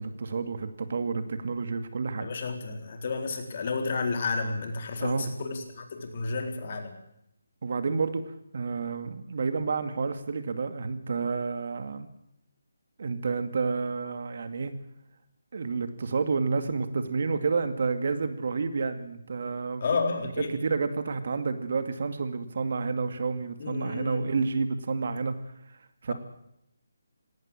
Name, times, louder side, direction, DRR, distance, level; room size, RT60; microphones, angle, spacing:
voice 1, 0.0-2.3 5.0-5.3 7.6-12.1 13.0-14.7 15.5-19.8 20.2-25.4 26.0-26.1, right 4 dB, 55° right, 9 dB, 2.3 m, -30 dB
voice 2, 2.2-6.9 19.8-20.5 23.6-24.2, left 4 dB, 40° left, 4 dB, 4.1 m, -31 dB
19.0 x 17.5 x 8.9 m, 0.78 s
hypercardioid pair, 165°, 0 cm